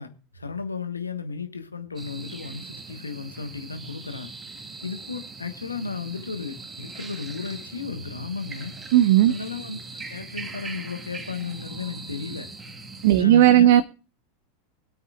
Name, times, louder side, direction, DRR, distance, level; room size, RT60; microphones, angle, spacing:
voice 1, 0.0-4.3 4.8-8.7 9.3-12.5 13.1-13.8, left 5 dB, 80° left, 1.4 m, -34 dB
sound 1, 2.0-13.2, right 3 dB, 20° right, 1.9 m, -40 dB
voice 2, 8.9-9.3 13.0-13.8, right 12 dB, 55° right, 0.6 m, -15 dB
23.5 x 8.7 x 2.4 m
figure-of-eight pair, 85°, 0 cm